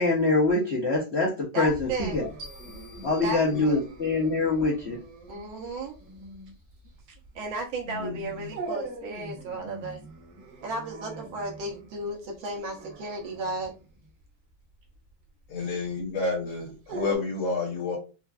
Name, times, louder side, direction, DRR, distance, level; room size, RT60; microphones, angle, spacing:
voice 1, 0.0-2.3 3.0-5.0, left 3 dB, 60° left, -4 dB, 0.6 m, -24 dB
voice 2, 1.5-2.2 3.2-3.8 5.3-6.0 7.4-10.0 10.6-13.7 15.6-15.7, right 2 dB, 75° right, 0 dB, 1.7 m, -34 dB
Dog, 1.6-17.2, right 3 dB, 55° right, 1.3 m, -43 dB
sound 1, 2.4-4.2, equal, 40° right, 1.0 m, -48 dB
voice 3, 7.9-8.5 15.5-18.0, left 3 dB, 85° left, -1 dB, 1.9 m, -30 dB
4.5 x 2.5 x 2.2 m, 0.30 s
omnidirectional pair, 2.3 m